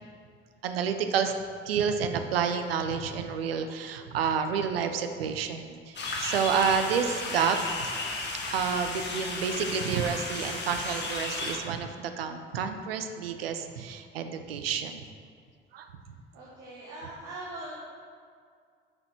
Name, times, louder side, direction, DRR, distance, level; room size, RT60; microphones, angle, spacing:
voice 1, 0.6-1.3 1.7-7.6 8.5-15.0 15.7-15.9, right 7 dB, 75° right, 7 dB, 0.6 m, -29 dB
sound 1, 6.0-11.6, left 3 dB, 35° left, 1.5 m, -34 dB
voice 2, 16.3-17.7, right 2 dB, 60° right, -5 dB, 1.5 m, -41 dB
8.8 x 6.3 x 4.4 m, 2.2 s
figure-of-eight pair, 50°, 30 cm